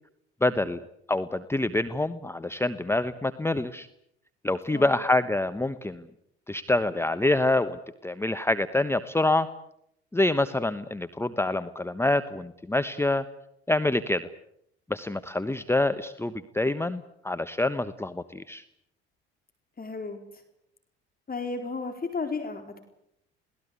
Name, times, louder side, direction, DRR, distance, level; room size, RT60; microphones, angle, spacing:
voice 1, 0.4-0.8 1.1-3.9 4.4-6.0 6.5-9.5 10.1-13.2 13.7-14.3 14.9-18.6, left 2 dB, 5° left, 11 dB, 1.1 m, -26 dB
voice 2, 4.7-5.0 19.8-20.4 21.3-22.8, left 4 dB, 25° left, 5 dB, 4.3 m, -34 dB
29.0 x 18.5 x 8.3 m, 0.75 s
hypercardioid pair, 65°, 33 cm